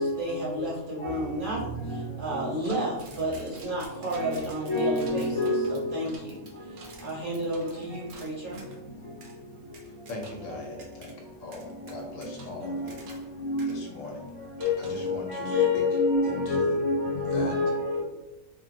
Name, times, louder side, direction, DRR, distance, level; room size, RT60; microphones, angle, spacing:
voice 1, 0.0-6.4 7.0-8.7, right 1 dB, 45° right, 0.9 m, -32 dB
sound 1, 2.6-8.8 9.2-9.4 9.7-10.5 10.8-11.1 11.5-13.3 13.6-13.7 14.6-15.1, right 3 dB, 85° right, 1.1 m, -50 dB
voice 2, 4.6-6.0 12.6-12.8 13.4-13.7 14.6-18.0, left 3 dB, 35° left, 0.5 m, -27 dB
voice 3, 9.8-11.1 11.4-13.0 13.7-14.3 14.8-15.8 16.2-16.8 17.2-17.5, left 2 dB, 70° left, 0.9 m, -40 dB
3.1 x 2.2 x 2.6 m
omnidirectional pair, 1.5 m